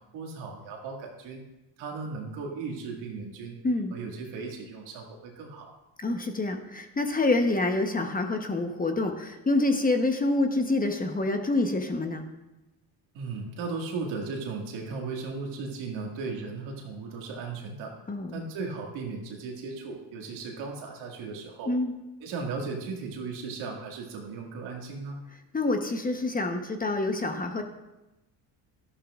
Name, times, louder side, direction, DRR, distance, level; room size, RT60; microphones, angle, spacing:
voice 1, 0.1-1.4 1.8-3.6 3.9-5.7 13.1-18.0 18.3-21.7 22.2-25.2, right 4 dB, 85° right, 1 dB, 2.2 m, -36 dB
voice 2, 6.0-12.2 18.1-18.4 21.7-21.9 25.5-27.6, left 2 dB, 20° left, 5 dB, 1.0 m, -27 dB
12.5 x 11.5 x 2.5 m, 0.99 s
cardioid pair, 105°, 46 cm